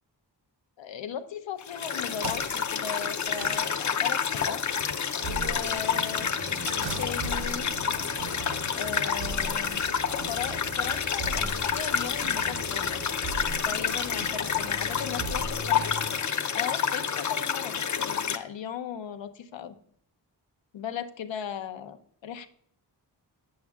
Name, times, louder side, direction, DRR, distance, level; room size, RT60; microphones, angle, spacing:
voice 1, 0.8-4.6 5.3-7.7 8.7-9.9 10.3-13.0 13.6-15.9 16.5-19.7 20.7-22.0 22.2-22.5, left 8 dB, 85° left, 8 dB, 0.7 m, -37 dB
sound 1, 1.6-18.4, left 7 dB, 40° left, 0.6 m, -29 dB
sound 2, 2.0-7.7, right 8 dB, 90° right, 0.6 m, -43 dB
sound 3, 5.2-16.2, right 2 dB, 50° right, 0.8 m, -39 dB
9.0 x 7.5 x 2.4 m, 0.66 s
wide cardioid pair, 95°, 44 cm